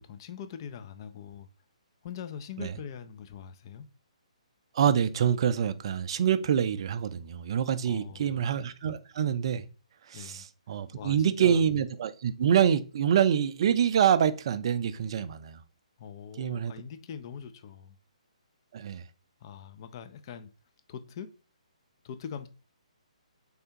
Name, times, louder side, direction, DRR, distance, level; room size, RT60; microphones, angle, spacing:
voice 1, 0.0-1.5 2.0-3.9 7.8-8.4 10.1-10.5 10.9-11.6 16.0-18.0 19.4-20.5 20.9-21.3 22.0-22.5, left 8 dB, 40° left, 0.4 m, -42 dB
voice 2, 4.7-9.7 10.1-15.6 16.4-16.7 18.7-19.0, right 8 dB, 45° right, 0.4 m, -26 dB
3.5 x 3.3 x 2.8 m
figure-of-eight pair, 135°, 4 cm